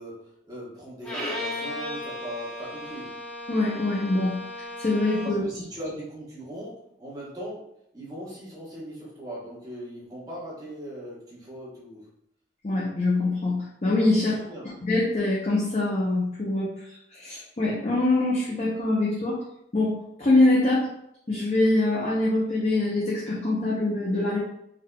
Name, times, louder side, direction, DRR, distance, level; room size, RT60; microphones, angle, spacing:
voice 1, 0.0-3.1 5.2-12.1 14.3-14.8, right 1 dB, 20° right, -6 dB, 1.1 m, -39 dB
Bowed string instrument, 1.0-5.5, left 1 dB, 5° left, 0.9 m, -35 dB
voice 2, 3.5-4.4 4.8-5.4 12.6-14.4 14.8-19.4 19.7-20.9 21.3-24.4, left 2 dB, 35° left, -6 dB, 0.6 m, -24 dB
3.8 x 3.4 x 2.2 m, 0.77 s
head